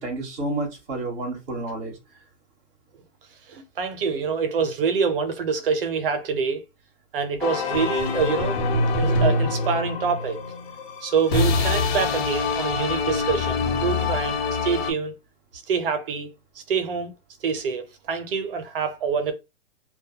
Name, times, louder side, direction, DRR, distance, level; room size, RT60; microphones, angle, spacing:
voice 1, 0.0-2.0, right 2 dB, 5° right, 0.4 m, -30 dB
voice 2, 3.5-6.6 7.1-8.6 9.0-10.4 11.0-15.1 15.7-16.3 16.6-17.1 17.4-19.3, right 6 dB, 45° right, 0.6 m, -26 dB
sound 1, 7.4-14.9, left 3 dB, 55° left, 1.0 m, -25 dB
2.2 x 2.2 x 2.7 m
hypercardioid pair, 160°, 37 cm